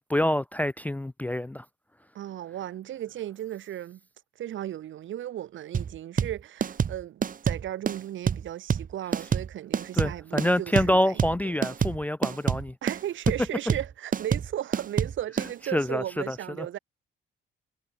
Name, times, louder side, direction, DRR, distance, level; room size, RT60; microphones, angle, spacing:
voice 1, 0.0-1.7 10.0-12.7 15.7-16.7, left 1 dB, 10° left, 0.4 m, -27 dB
voice 2, 2.1-4.0 4.4-11.5 12.8-16.8, right 12 dB, 75° right, 5.0 m, -36 dB
sound 1, 5.7-15.5, right 7 dB, 45° right, 1.5 m, -27 dB
cardioid pair, 90°, 20 cm